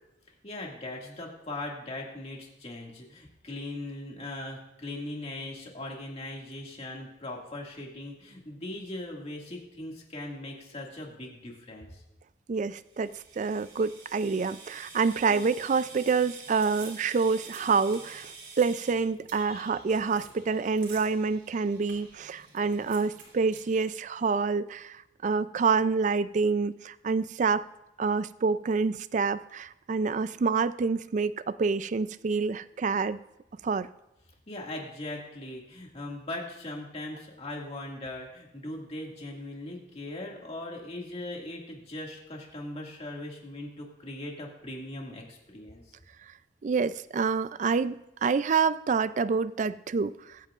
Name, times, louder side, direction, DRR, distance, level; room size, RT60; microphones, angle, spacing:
voice 1, 0.4-12.0 19.4-19.8 34.5-45.8, left 1 dB, 35° left, -1 dB, 2.1 m, -39 dB
voice 2, 12.5-27.6 28.0-33.2 33.6-33.9 46.6-50.4, right 5 dB, 45° right, 15 dB, 0.4 m, -27 dB
sound 1, 12.9-23.8, right 4 dB, 85° right, 3.6 m, -48 dB
22.5 x 8.9 x 2.5 m, 0.90 s
head